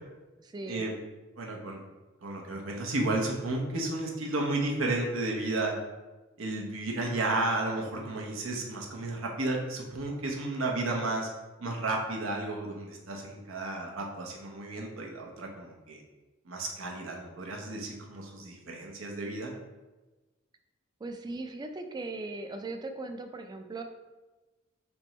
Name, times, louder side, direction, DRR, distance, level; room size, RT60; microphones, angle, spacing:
voice 1, 0.4-0.8 21.0-23.8, right 2 dB, 20° right, 6 dB, 0.3 m, -38 dB
voice 2, 1.4-1.8 2.2-5.7 6.4-11.3 11.6-16.0 16.5-19.5, right 2 dB, 85° right, 0 dB, 0.8 m, -32 dB
3.4 x 2.9 x 4.2 m, 1.2 s
head